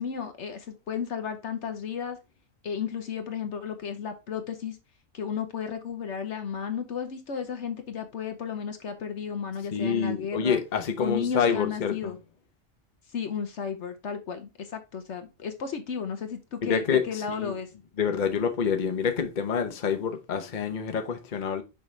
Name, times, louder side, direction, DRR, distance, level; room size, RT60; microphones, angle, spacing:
voice 1, 0.0-2.2 2.6-4.8 5.1-10.6 11.0-12.2 13.1-17.7, left 7 dB, 60° left, 1.1 m, -33 dB
voice 2, 9.7-12.1 16.6-17.5 18.0-21.6, left 6 dB, 40° left, 0.9 m, -27 dB
6.4 x 5.0 x 3.2 m
omnidirectional pair, 1.4 m